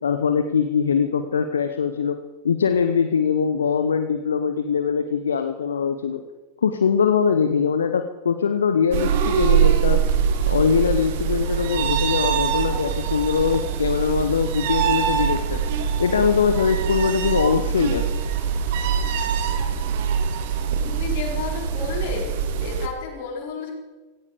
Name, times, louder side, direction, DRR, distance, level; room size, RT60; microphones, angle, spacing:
voice 1, 0.0-2.2 2.4-6.2 6.6-10.0 10.5-15.6 16.0-18.1, left 6 dB, 70° left, 8 dB, 1.0 m, -22 dB
sound 1, 8.9-22.9, right 8 dB, 50° right, 1.9 m, -23 dB
voice 2, 20.8-22.3 22.6-23.7, left 5 dB, 50° left, 1 dB, 4.5 m, -31 dB
17.0 x 16.5 x 5.1 m, 1.3 s
figure-of-eight pair, 90°, 0 cm